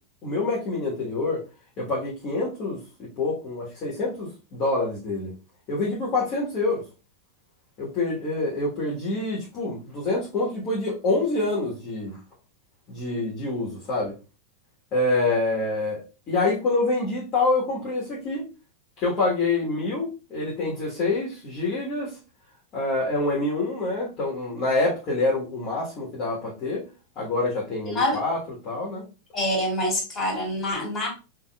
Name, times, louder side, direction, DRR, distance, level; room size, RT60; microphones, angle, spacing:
voice 1, 0.2-1.4 1.8-5.3 5.7-6.8 7.8-12.2 12.9-14.1 14.9-18.4 19.0-22.2 22.7-26.8 27.1-28.4 28.6-29.0, left 2 dB, 35° left, -5 dB, 1.6 m, -26 dB
voice 2, 27.8-28.2 29.3-31.1, left 1 dB, 20° left, 0 dB, 2.5 m, -26 dB
5.7 x 3.0 x 2.5 m, 0.31 s
figure-of-eight pair, 90°, 0 cm